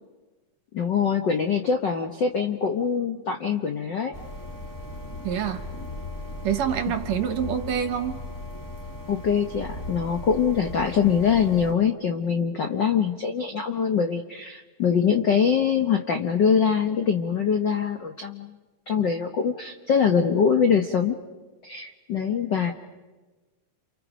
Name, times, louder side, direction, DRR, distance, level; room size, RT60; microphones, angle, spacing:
voice 1, 0.7-4.1 9.1-18.5 18.9-21.2 21.6-22.7, left 6 dB, 70° left, 5 dB, 1.0 m, -23 dB
sound 1, 4.1-11.7, left 2 dB, 10° left, 1.0 m, -37 dB
voice 2, 5.2-5.6 6.4-8.2, right 9 dB, 65° right, 9 dB, 2.2 m, -26 dB
29.0 x 29.0 x 5.1 m, 1.2 s
omnidirectional pair, 3.7 m